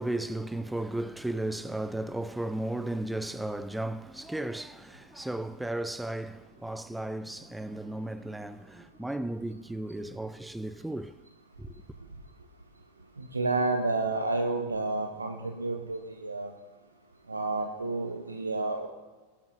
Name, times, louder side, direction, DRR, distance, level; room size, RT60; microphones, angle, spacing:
voice 1, 0.0-11.2 11.6-11.8, right 1 dB, 5° right, 0.4 m, -35 dB
voice 2, 13.2-16.5 17.3-18.9, right 2 dB, 80° right, 1.0 m, -30 dB
20.5 x 11.5 x 2.7 m
figure-of-eight pair, 90°, 0 cm